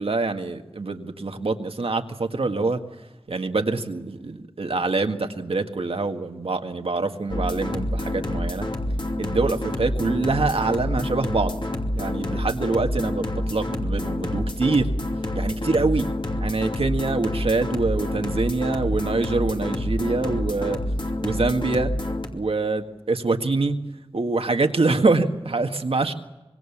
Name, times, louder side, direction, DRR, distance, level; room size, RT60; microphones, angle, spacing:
voice 1, 0.0-8.7 9.2-11.6 11.9-14.9 15.3-16.1 16.4-20.8 21.2-21.9 22.3-23.8 24.1-26.1, right 3 dB, 80° right, 6 dB, 1.8 m, -25 dB
sound 1, 7.3-22.3, left 1 dB, 55° left, 2.6 m, -28 dB
25.0 x 22.0 x 7.3 m, 1.0 s
wide cardioid pair, 50°, 10 cm